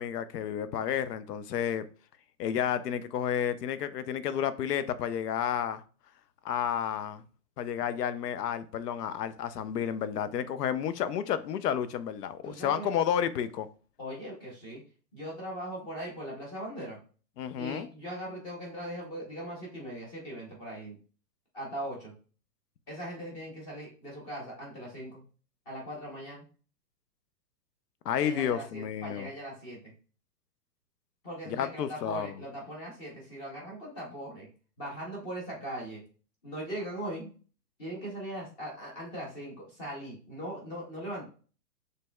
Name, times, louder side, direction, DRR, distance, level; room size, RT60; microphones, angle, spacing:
voice 1, 0.0-1.9 2.4-5.8 6.4-7.2 7.6-13.7 17.4-17.9 28.0-29.3 31.5-32.3, left 9 dB, 70° left, 0.6 m, -31 dB
voice 2, 12.4-12.9 14.0-14.8 15.1-17.0 17.6-21.0 21.5-22.1 22.9-25.2 25.7-26.5 28.2-29.9 31.2-34.5 34.8-36.0 36.4-37.3 37.8-41.3, equal, 10° left, 0.6 m, -40 dB
6.6 x 3.2 x 2.2 m
hypercardioid pair, 150°, 49 cm